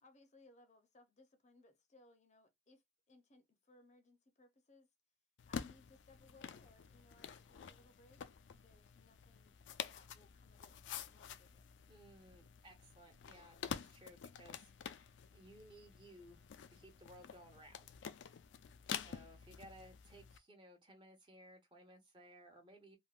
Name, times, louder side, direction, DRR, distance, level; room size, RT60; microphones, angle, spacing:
voice 1, 0.0-4.9 5.4-8.2 8.5-10.8 11.1-11.7 18.8-19.3, left 2 dB, 40° left, 0.6 m, -66 dB
sound 1, 5.4-20.4, left 7 dB, 90° left, 0.4 m, -49 dB
voice 2, 11.9-14.7 15.3-16.4 16.7-18.0 18.9-23.0, right 1 dB, 30° right, 0.9 m, -59 dB
3.4 x 2.1 x 2.3 m
head